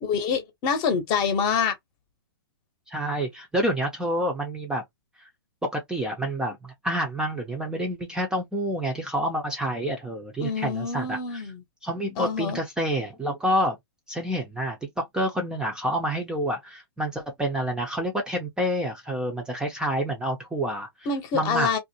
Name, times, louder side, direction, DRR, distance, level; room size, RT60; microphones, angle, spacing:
voice 1, 0.0-1.7 10.4-11.6 12.2-12.6 21.1-21.8, left 6 dB, 35° left, 0.9 m, -26 dB
voice 2, 2.9-4.8 5.6-11.4 11.8-13.8 14.1-20.9 21.3-21.8, equal, 5° right, 0.5 m, -28 dB
2.5 x 2.1 x 2.7 m
hypercardioid pair, 135°, 13 cm